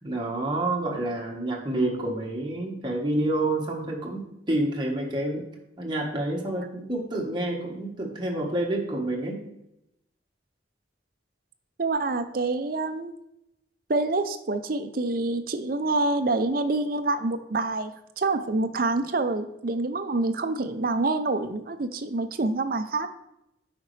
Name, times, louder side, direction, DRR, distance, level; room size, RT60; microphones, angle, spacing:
voice 1, 0.0-5.5 5.8-9.4, right 1 dB, 25° right, -1 dB, 1.3 m, -28 dB
voice 2, 11.8-13.1 13.9-23.1, right 2 dB, 50° right, 9 dB, 0.6 m, -27 dB
8.7 x 5.1 x 3.2 m, 0.83 s
head